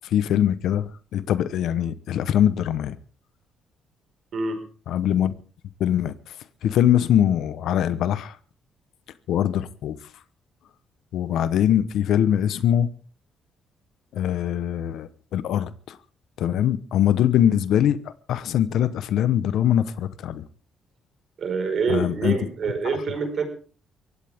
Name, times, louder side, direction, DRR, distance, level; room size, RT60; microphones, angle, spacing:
voice 1, 0.1-3.0 4.9-5.3 5.8-6.1 6.6-8.3 9.3-10.0 11.1-12.9 14.1-16.0 16.4-18.0 18.3-20.4 21.9-22.4, left 10 dB, 80° left, 1.0 m, -22 dB
voice 2, 4.3-4.7 21.4-23.4, right 4 dB, 55° right, 5.0 m, -26 dB
22.5 x 17.0 x 3.6 m
cardioid pair, 90°, 0 cm